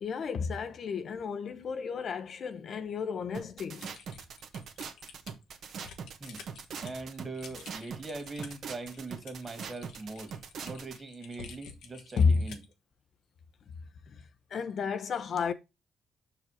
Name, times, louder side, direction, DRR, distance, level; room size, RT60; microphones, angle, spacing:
voice 1, 0.0-3.9 12.2-12.4 14.5-15.5, left 5 dB, 55° left, 0.7 m, -31 dB
sound 1, 3.3-11.0, right 6 dB, 65° right, 1.1 m, -42 dB
Typing, 3.8-12.7, left 6 dB, 85° left, 1.2 m, -51 dB
voice 2, 6.8-10.3 10.6-12.6, right 3 dB, 30° right, 2.1 m, -41 dB
6.0 x 4.9 x 4.8 m
cardioid pair, 90°, 0 cm